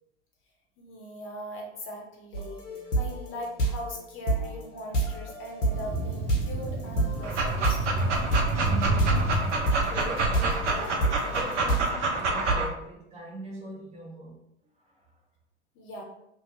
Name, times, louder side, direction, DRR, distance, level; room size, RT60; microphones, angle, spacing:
voice 1, 0.8-2.6 3.0-8.1 15.7-16.0, equal, 35° left, 0 dB, 0.9 m, -40 dB
sound 1, 2.3-11.9, right 2 dB, 85° left, 0.8 m, -29 dB
Thunder, 5.7-11.4, right 2 dB, 40° right, 0.6 m, -31 dB
Dog, 7.2-12.7, right 2 dB, 80° right, 0.6 m, -28 dB
voice 2, 8.6-14.4 14.8-15.1, equal, 20° right, -6 dB, 1.1 m, -41 dB
2.8 x 2.3 x 3.0 m, 0.80 s
figure-of-eight pair, 85°, 35 cm